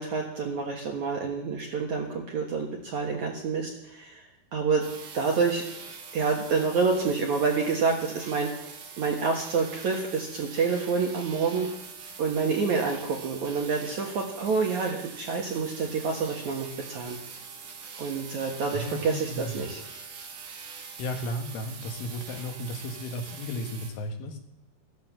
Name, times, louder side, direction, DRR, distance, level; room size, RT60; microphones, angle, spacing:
voice 1, 0.0-4.2 4.5-4.8 5.1-5.6 6.1-8.5 9.0-11.7 12.2-17.2 18.0-19.8, right 5 dB, 65° right, 0 dB, 2.0 m, -28 dB
sound 1, 4.8-23.9, right 5 dB, 80° right, 5.0 m, -43 dB
voice 2, 18.7-19.7 21.0-24.4, left 1 dB, 85° left, 4 dB, 4.1 m, -34 dB
15.0 x 11.5 x 7.4 m, 0.84 s
omnidirectional pair, 5.4 m